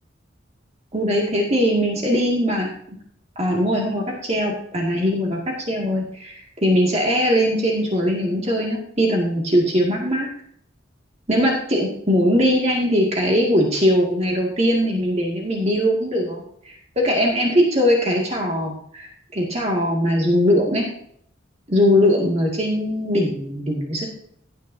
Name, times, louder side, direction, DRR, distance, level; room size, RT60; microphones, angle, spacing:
voice 1, 0.9-2.7 3.4-10.3 11.3-20.9 21.7-24.1, equal, 35° right, -1 dB, 2.1 m, -20 dB
16.5 x 9.2 x 2.7 m, 0.66 s
head